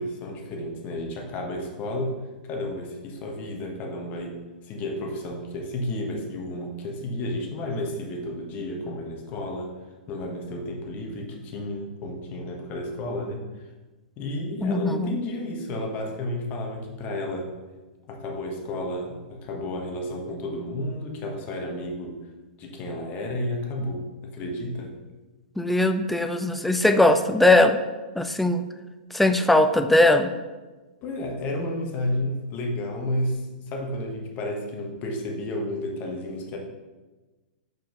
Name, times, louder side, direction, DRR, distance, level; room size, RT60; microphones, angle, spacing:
voice 1, 0.0-2.2 2.4-9.7 10.1-13.6 14.2-17.5 18.1-22.2 22.6-24.9 31.0-36.6, left 1 dB, 35° left, 1 dB, 1.3 m, -32 dB
voice 2, 14.6-15.2 25.6-27.8 28.2-28.7 29.1-30.3, left 1 dB, ahead, 8 dB, 0.3 m, -20 dB
5.4 x 5.0 x 3.9 m, 1.2 s
hypercardioid pair, 115°, 5 cm